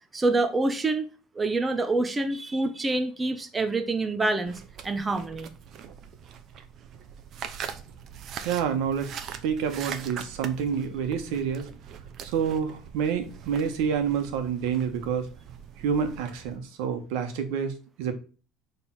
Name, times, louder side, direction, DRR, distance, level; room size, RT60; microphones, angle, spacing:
voice 1, 0.1-1.1 1.4-5.5, right 2 dB, 15° right, 7 dB, 0.7 m, -26 dB
sound 1, 4.5-16.6, right 8 dB, 45° right, 0.8 m, -42 dB
voice 2, 8.4-9.1 9.4-11.7 12.2-15.3 15.8-18.1, right 7 dB, 80° right, 7 dB, 1.3 m, -28 dB
6.6 x 3.5 x 5.8 m, 0.36 s
cardioid pair, 135°, 0 cm